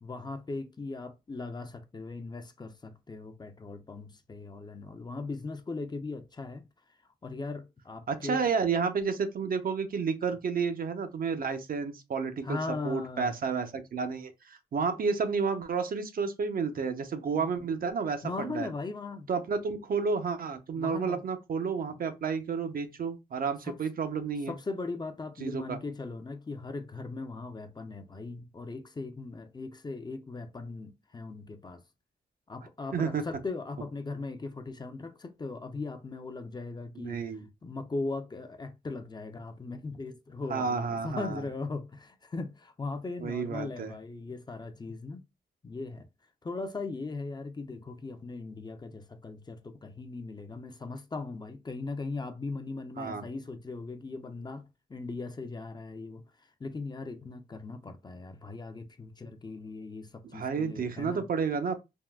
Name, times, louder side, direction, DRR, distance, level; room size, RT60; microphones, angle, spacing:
voice 1, 0.0-6.6 7.2-8.5 12.4-13.3 17.3-17.5 18.2-19.3 20.8-21.2 23.6-23.8 24.5-31.8 32.5-37.2 37.6-45.2 45.6-46.1 46.4-54.6 54.9-56.2 56.6-61.3, left 3 dB, 25° left, 0.4 m, -39 dB
voice 2, 8.1-12.6 12.8-18.7 19.3-24.5 25.4-25.8 32.9-33.2 37.0-37.5 40.5-41.4 43.2-43.9 53.0-53.2 60.3-61.8, right 5 dB, 60° right, 0.5 m, -31 dB
3.5 x 2.2 x 2.2 m
cardioid pair, 70°, 17 cm